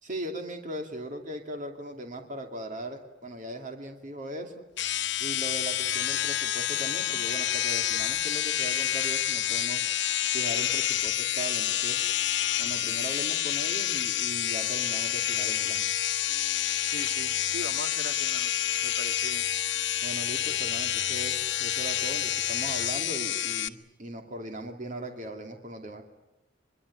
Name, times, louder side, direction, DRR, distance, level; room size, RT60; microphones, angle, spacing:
voice 1, 0.0-4.6 5.2-9.8 10.3-12.0 12.6-15.8 20.0-26.0, right 1 dB, 45° right, 4 dB, 2.6 m, -39 dB
Beard Machine, 4.8-23.7, left 11 dB, 70° left, 1.1 m, -28 dB
voice 2, 16.8-18.5 18.8-19.5, right 2 dB, 70° right, 7 dB, 1.9 m, -40 dB
25.0 x 22.5 x 9.9 m, 0.90 s
head